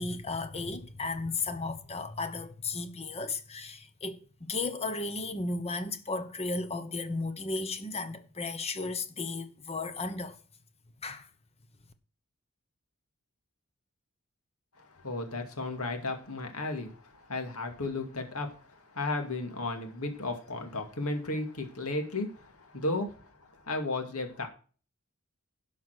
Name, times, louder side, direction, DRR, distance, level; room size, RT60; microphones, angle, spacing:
voice 1, 0.0-10.4 11.0-11.3, left 3 dB, 30° left, 1.1 m, -34 dB
voice 2, 15.0-23.3 23.6-24.5, left 2 dB, 80° left, 2.3 m, -34 dB
11.5 x 5.7 x 6.2 m
head